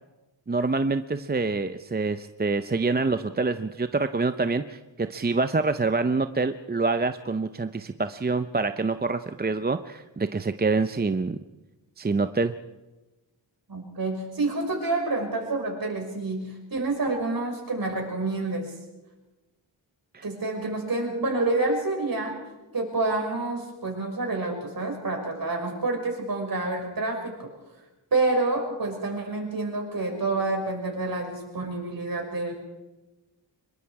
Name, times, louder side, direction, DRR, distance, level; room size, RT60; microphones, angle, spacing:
voice 1, 0.5-11.4 12.0-12.5 20.1-20.2, right 3 dB, 20° right, 10 dB, 0.6 m, -26 dB
voice 2, 13.7-18.8 20.2-22.4 22.7-27.5 28.1-32.5, right 2 dB, 50° right, 2 dB, 5.6 m, -28 dB
25.0 x 22.0 x 4.8 m, 1.1 s
wide cardioid pair, 90°, 45 cm